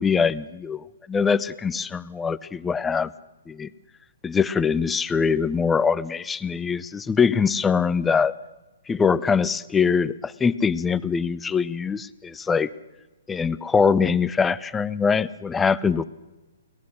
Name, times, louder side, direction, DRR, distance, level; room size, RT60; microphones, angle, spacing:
voice 1, 0.0-3.1 3.5-3.7 4.2-8.3 8.9-12.7 13.3-16.0, left 5 dB, 10° left, 16 dB, 0.6 m, -23 dB
23.5 x 18.5 x 6.4 m, 1.1 s
hypercardioid pair, 135°, 0 cm